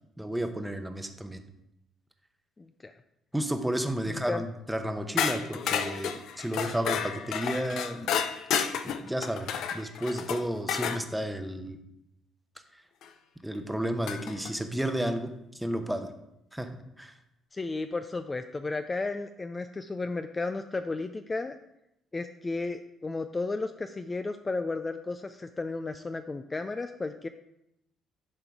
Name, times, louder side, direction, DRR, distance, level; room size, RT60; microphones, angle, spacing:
voice 1, 0.2-1.4 3.3-8.1 8.8-11.8 13.4-16.1 16.5-16.7 17.0-17.1, right 1 dB, 5° right, 6 dB, 0.9 m, -32 dB
voice 2, 2.6-2.9 4.1-4.4 17.5-21.6 22.1-27.3, left 3 dB, 25° left, 8 dB, 0.4 m, -33 dB
sound 1, 5.2-11.0 13.0-13.1 14.1-14.5, left 8 dB, 75° left, 0.6 m, -31 dB
10.5 x 3.8 x 4.6 m, 0.84 s
cardioid pair, 90°, 0 cm